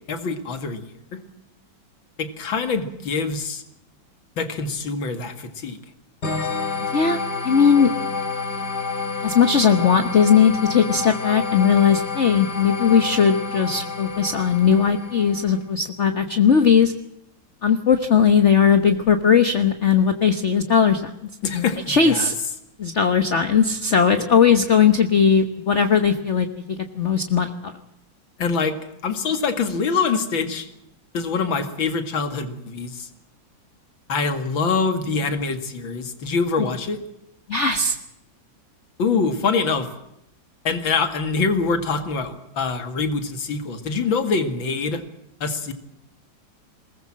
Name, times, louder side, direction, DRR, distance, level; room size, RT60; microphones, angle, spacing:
voice 1, 0.1-1.2 2.2-3.6 4.4-5.8 21.4-22.3 28.4-28.8 29.0-30.7 31.1-33.1 34.1-37.0 39.0-39.9 40.6-45.0 45.4-45.7, left 4 dB, 80° left, 9 dB, 2.8 m, -24 dB
sound 1, 6.2-15.6, left 4 dB, 55° left, 3.0 m, -29 dB
voice 2, 7.4-7.9 9.2-16.9 17.6-21.1 21.5-22.3 22.8-26.5 27.0-27.7 36.6-36.7 37.5-38.0, left 6 dB, 40° left, 8 dB, 1.4 m, -18 dB
21.5 x 20.0 x 7.6 m, 0.80 s
omnidirectional pair, 2.1 m